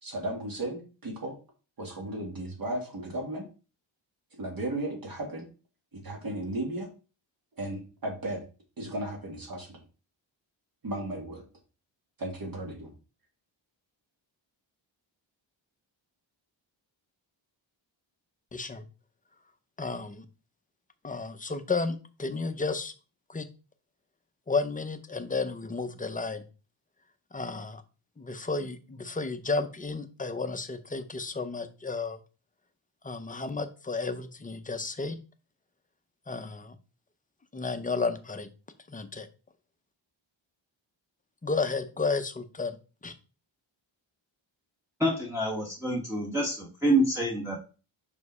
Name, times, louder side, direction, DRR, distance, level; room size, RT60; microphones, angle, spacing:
voice 1, 0.0-1.4 1.8-3.4 4.3-5.5 5.9-6.9 7.6-8.4 8.8-9.8 10.8-11.4 12.2-12.9, right 1 dB, 45° right, 1 dB, 2.3 m, -35 dB
voice 2, 18.5-18.9 19.8-20.2 21.0-22.9 23.3-23.5 24.5-26.4 27.3-27.8 28.2-32.2 33.0-35.2 36.3-36.7 37.5-38.5 38.9-39.3 41.4-42.8 43.0-43.1, left 4 dB, 15° left, 8 dB, 0.6 m, -32 dB
voice 3, 45.0-47.6, right 1 dB, 5° right, -4 dB, 1.2 m, -27 dB
5.3 x 5.1 x 4.8 m, 0.34 s
wide cardioid pair, 170°, 47 cm